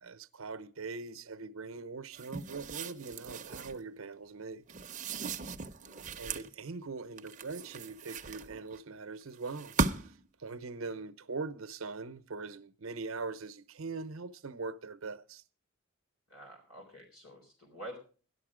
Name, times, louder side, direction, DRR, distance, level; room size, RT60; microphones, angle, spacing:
voice 1, 0.0-4.6 6.2-15.4, right 4 dB, 75° right, 0.8 m, -42 dB
sound 1, 2.1-3.8 4.7-6.5 7.2-8.8 9.4-10.3, right 4 dB, 35° right, 0.7 m, -37 dB
voice 2, 5.8-6.2 16.3-18.0, right 1 dB, 90° left, 3.6 m, -48 dB
13.0 x 11.5 x 4.9 m
head